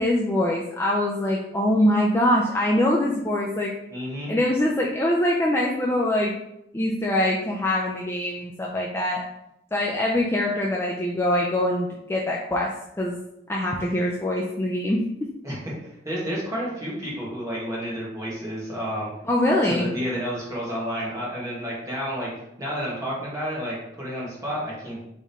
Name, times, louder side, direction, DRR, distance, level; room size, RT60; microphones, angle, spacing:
voice 1, 0.0-3.7 4.3-6.3 6.7-9.2 9.7-12.7 13.0-13.2 13.5-15.3 19.2-19.9, left 1 dB, 15° left, -3 dB, 0.4 m, -23 dB
voice 2, 3.9-4.3 15.4-19.1 19.6-22.3 22.6-25.0, equal, 20° right, -6 dB, 1.6 m, -30 dB
3.6 x 3.6 x 4.2 m, 0.83 s
head